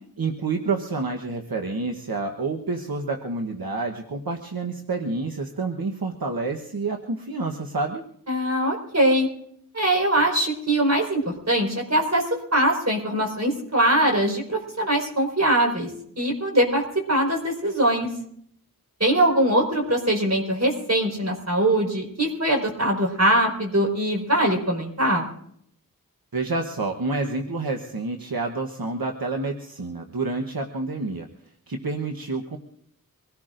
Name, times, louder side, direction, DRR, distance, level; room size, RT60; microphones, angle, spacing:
voice 1, 0.2-8.0 26.3-31.3 31.7-32.6, right 3 dB, 75° right, 2 dB, 1.2 m, -28 dB
voice 2, 8.3-9.3 9.7-11.2 11.5-12.3 12.5-15.9 16.2-16.8 17.1-18.1 19.0-25.3, right 1 dB, 45° right, 1 dB, 4.7 m, -22 dB
25.0 x 18.0 x 2.6 m, 0.68 s
wide cardioid pair, 50°, 36 cm